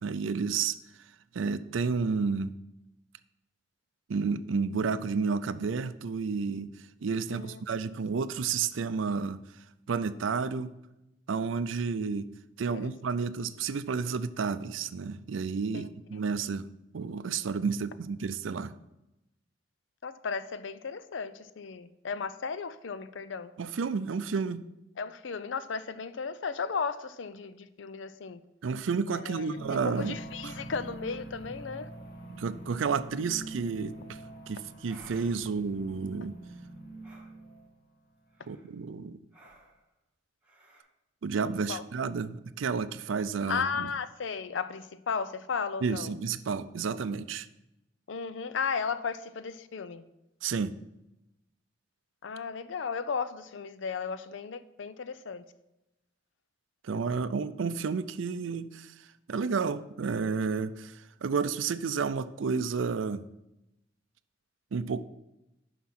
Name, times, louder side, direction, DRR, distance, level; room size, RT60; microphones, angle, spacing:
voice 1, 0.0-0.8 1.3-2.5 4.1-6.7 7.0-9.4 9.9-10.7 11.3-12.3 12.6-16.7 16.9-18.7 23.6-24.6 28.6-30.2 30.4-30.5 32.3-34.2 34.5-36.3 38.5-39.2 41.2-43.9 45.8-47.5 50.4-50.7 56.8-58.9 59.3-63.2 64.7-65.0, right 5 dB, 90° right, 14 dB, 0.5 m, -31 dB
voice 2, 7.3-7.6 12.7-12.9 15.7-15.9 16.1-16.2 20.0-23.5 25.0-28.4 29.1-31.9 41.7-41.8 43.5-46.2 48.1-50.1 52.2-55.4, left 5 dB, 75° left, 14 dB, 0.5 m, -35 dB
sound 1, 29.5-37.8, right 2 dB, 55° left, 1.3 m, -44 dB
sound 2, 34.8-35.6 37.0-37.3 38.3-38.7 39.3-39.8 40.4-40.8, right 1 dB, 5° right, 2.1 m, -55 dB
9.5 x 5.9 x 4.2 m, 0.92 s
head